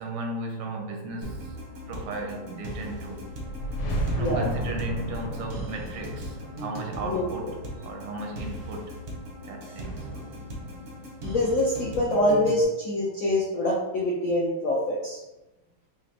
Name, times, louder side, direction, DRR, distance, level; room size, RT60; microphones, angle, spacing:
voice 1, 0.0-1.6 1.9-3.3 4.1-7.6 7.8-9.0 9.4-10.3, right 2 dB, 85° right, 1.6 m, -35 dB
sound 1, 1.2-12.6, equal, 60° right, 0.8 m, -39 dB
sound 2, 3.2-8.2, equal, 65° left, 1.3 m, -33 dB
voice 2, 4.2-4.5 7.0-7.5 11.2-15.2, left 1 dB, 85° left, 0.7 m, -25 dB
4.1 x 2.9 x 2.8 m
omnidirectional pair, 2.3 m